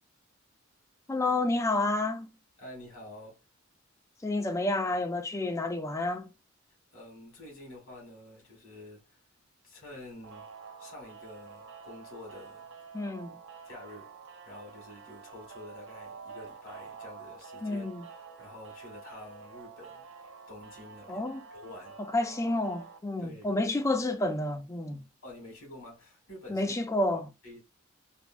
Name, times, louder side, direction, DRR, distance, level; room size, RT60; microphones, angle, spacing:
voice 1, 1.1-2.3 4.2-6.3 12.9-13.3 17.6-18.0 21.1-21.4 22.1-25.0 26.5-27.3, left 2 dB, 15° left, 0.4 m, -30 dB
voice 2, 2.6-3.4 6.9-9.2 9.6-10.5 10.8-12.7 13.6-14.1 14.4-20.0 20.5-22.0 23.2-23.6 25.2-26.9 27.4-27.6, left 1 dB, 85° left, 1.6 m, -48 dB
sound 1, 10.2-23.0, right 5 dB, 65° right, 0.5 m, -48 dB
3.4 x 2.1 x 2.5 m
head